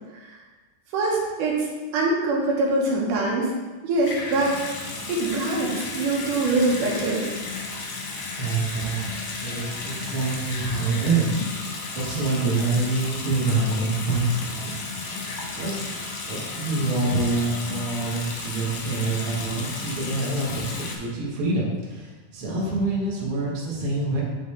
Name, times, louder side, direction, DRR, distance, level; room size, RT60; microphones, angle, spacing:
voice 1, 0.9-1.7 1.9-3.5 3.8-4.7 5.1-7.3, right 2 dB, 85° right, -3 dB, 2.6 m, -23 dB
Water tap faucet / Sink (filling or washing) / Bathtub (filling or washing), 4.0-21.0, left 3 dB, 65° left, 1.3 m, -33 dB
voice 2, 8.4-9.0 9.4-14.7 15.1-15.8 16.3-24.2, right 3 dB, 50° right, -4 dB, 1.8 m, -26 dB
8.4 x 4.0 x 3.2 m, 1.3 s
omnidirectional pair, 3.6 m